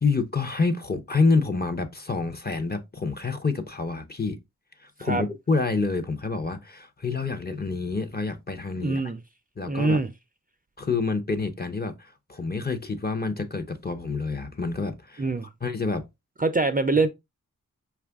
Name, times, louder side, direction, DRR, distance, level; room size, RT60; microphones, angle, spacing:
voice 1, 0.0-4.4 4.8-9.0 9.6-10.0 10.8-15.2 15.6-16.0, left 4 dB, 30° left, 0.7 m, -27 dB
voice 2, 8.8-9.2 9.6-10.1 15.2-15.5 16.4-17.1, right 3 dB, 25° right, 0.5 m, -24 dB
5.1 x 2.4 x 3.4 m
cardioid pair, 50°, 34 cm